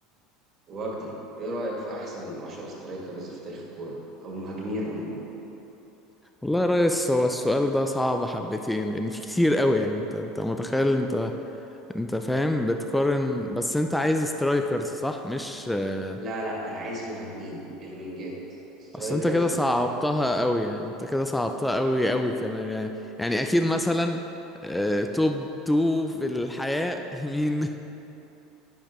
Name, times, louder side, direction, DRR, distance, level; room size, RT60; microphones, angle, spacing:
voice 1, 0.7-5.2 16.2-18.4 18.8-20.0, right 1 dB, 40° right, -3 dB, 1.8 m, -34 dB
voice 2, 6.4-11.3 11.9-16.2 18.9-22.9 23.2-24.2 24.6-27.8, left 1 dB, 5° left, 5 dB, 0.4 m, -25 dB
9.7 x 7.0 x 3.0 m, 3.0 s
hypercardioid pair, 85°, 0 cm